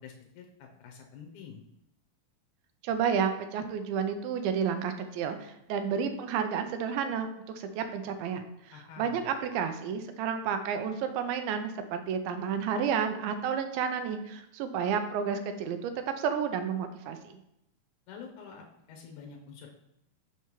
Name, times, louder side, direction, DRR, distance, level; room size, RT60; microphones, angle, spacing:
voice 1, 0.0-1.6 8.7-9.3 18.1-19.8, left 6 dB, 75° left, 1 dB, 1.9 m, -47 dB
voice 2, 2.8-7.3 7.6-17.4, right 7 dB, 90° right, 7 dB, 2.5 m, -31 dB
6.0 x 5.5 x 3.0 m, 0.81 s
omnidirectional pair, 4.2 m